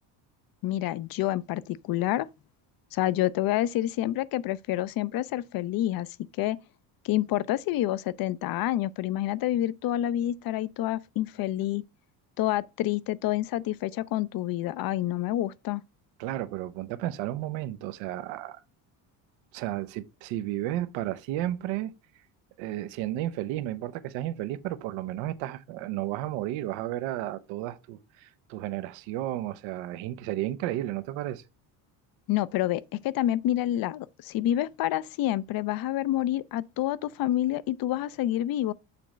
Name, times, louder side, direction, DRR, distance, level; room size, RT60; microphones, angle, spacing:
voice 1, 0.6-2.3 2.9-6.1 6.4-6.6 7.0-11.8 12.4-15.8 32.3-38.7, left 13 dB, 55° left, 0.5 m, -28 dB
voice 2, 16.2-18.6 19.5-21.9 22.6-31.4, right 14 dB, 85° right, 0.7 m, -33 dB
6.9 x 3.0 x 4.9 m
supercardioid pair, 95°, 45 cm